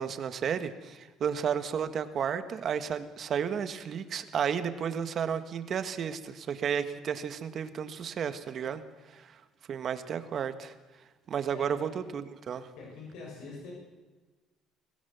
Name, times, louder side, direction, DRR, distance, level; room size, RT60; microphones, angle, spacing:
voice 1, 0.0-8.8 9.1-9.3 9.7-10.7 11.3-12.7, right 7 dB, 50° right, 10 dB, 1.7 m, -32 dB
voice 2, 11.5-11.9 12.8-13.7, left 4 dB, 80° left, -1 dB, 7.0 m, -44 dB
23.0 x 17.5 x 7.1 m, 1.3 s
cardioid pair, 115°, 0 cm